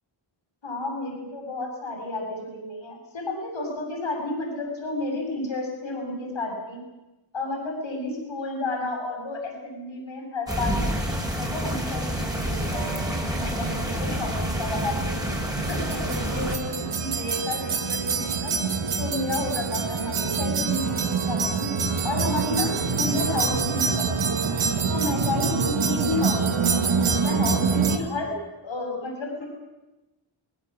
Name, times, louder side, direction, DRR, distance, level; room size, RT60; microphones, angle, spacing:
voice 1, 0.6-6.8 7.3-11.0 11.4-15.1 15.5-18.5 19.0-21.7 22.0-24.4 24.9-26.9 27.2-28.4 28.6-29.5, left 2 dB, 70° left, 2 dB, 7.7 m, -31 dB
sound 1, 10.5-16.6, equal, 5° right, 4.8 m, -28 dB
sound 2, 12.7-28.0, right 5 dB, 85° right, 2.1 m, -26 dB
24.5 x 21.0 x 7.5 m, 1.0 s
wide cardioid pair, 115°, 48 cm